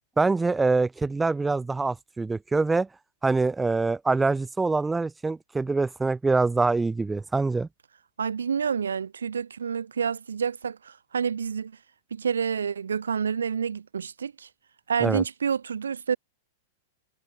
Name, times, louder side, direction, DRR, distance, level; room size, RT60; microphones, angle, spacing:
voice 1, 0.2-2.9 3.2-7.7 15.0-15.2, right 3 dB, 10° right, 1.7 m, -24 dB
voice 2, 8.2-11.7 12.1-14.5 14.9-16.2, right 6 dB, 70° right, 3.8 m, -28 dB
figure-of-eight pair, 100°, 0 cm